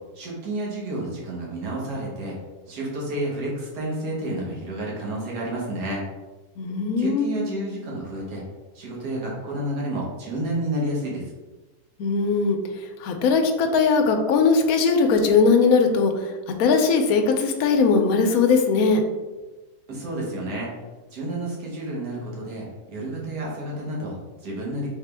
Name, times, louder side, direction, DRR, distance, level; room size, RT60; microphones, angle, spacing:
voice 1, 0.2-2.4 2.7-6.0 7.0-8.4 8.8-11.2 19.9-20.7 21.1-24.9, right 1 dB, 75° right, -4 dB, 1.7 m, -30 dB
voice 2, 6.6-7.4 12.0-19.0, left 4 dB, 70° left, 5 dB, 1.0 m, -20 dB
3.6 x 3.6 x 3.3 m, 1.2 s
omnidirectional pair, 1.7 m